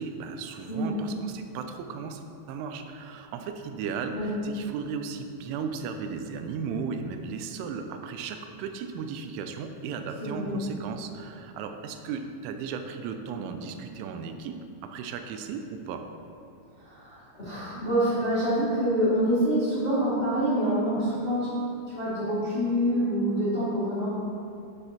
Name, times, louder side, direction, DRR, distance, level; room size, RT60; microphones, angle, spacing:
voice 1, 0.0-2.2 2.5-16.1, right 5 dB, 85° right, 6 dB, 3.0 m, -36 dB
voice 2, 10.2-10.6 16.8-21.5 21.9-24.1, equal, 80° left, -11 dB, 0.5 m, -26 dB
9.8 x 9.7 x 2.9 m, 2.5 s
omnidirectional pair, 5.6 m